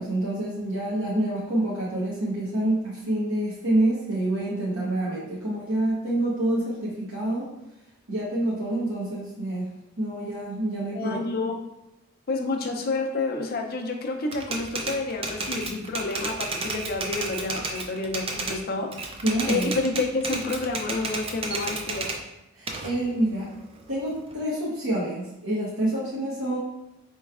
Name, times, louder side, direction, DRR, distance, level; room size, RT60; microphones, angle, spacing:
voice 1, 0.0-7.5 8.1-9.7 10.0-11.2 19.2-19.7 22.6-23.5 23.9-26.6, right 1 dB, 70° right, -7 dB, 0.9 m, -27 dB
voice 2, 10.9-11.5 12.3-18.9 19.5-22.1, left 3 dB, 50° left, 3 dB, 0.5 m, -29 dB
Typewriter, 14.3-18.6 18.9-22.2 22.7-24.3, right 3 dB, 25° right, 0.3 m, -32 dB
4.4 x 3.1 x 2.4 m, 0.88 s
head